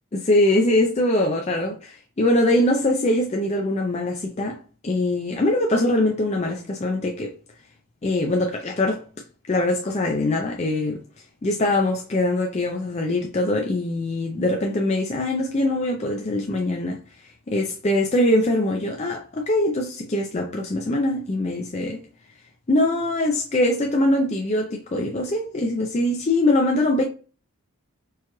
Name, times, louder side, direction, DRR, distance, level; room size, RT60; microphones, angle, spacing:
voice 1, 0.1-7.3 8.0-9.0 9.5-11.0 11.4-17.0 17.5-22.0 22.7-27.0, left 1 dB, 30° left, 0.4 m, -22 dB
4.6 x 2.3 x 3.0 m
head